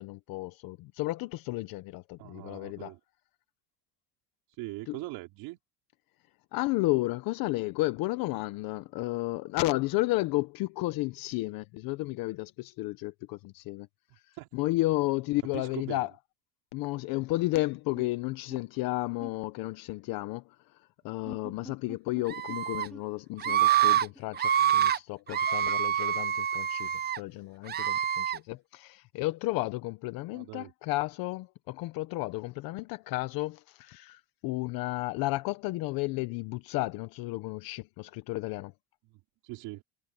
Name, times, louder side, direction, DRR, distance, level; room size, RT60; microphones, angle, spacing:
voice 1, 0.0-2.9 4.9-5.0 6.5-13.9 14.5-16.1 16.7-38.7, left 20 dB, 60° left, 0.9 m, -32 dB
voice 2, 2.2-3.0 4.5-5.6 14.3-14.5 15.5-16.1 30.3-30.7 39.0-39.8, right 21 dB, 65° right, 4.7 m, -41 dB
sound 1, 17.9-18.1 18.5-18.6 19.2-19.3 21.1-22.2 22.5-22.6 22.9-23.0 23.4-23.5 24.1-24.2 24.8-24.9 25.3-25.7, left 1 dB, ahead, 1.9 m, -45 dB
Screaming, 22.3-22.9 23.4-24.1 24.3-25.0 25.3-27.2 27.7-28.4, right 10 dB, 25° right, 0.7 m, -26 dB
cardioid pair, 150°, 40 cm